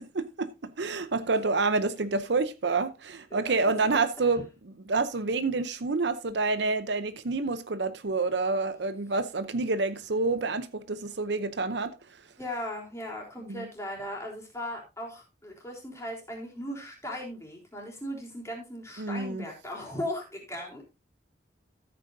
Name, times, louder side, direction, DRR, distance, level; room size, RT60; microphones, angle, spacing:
voice 1, 0.0-4.4 4.9-11.9 13.5-13.7 19.0-19.5, right 3 dB, 65° right, 0.7 m, -28 dB
voice 2, 3.3-4.4 12.4-20.8, left 1 dB, 15° left, 3.7 m, -38 dB
14.0 x 8.8 x 2.7 m
head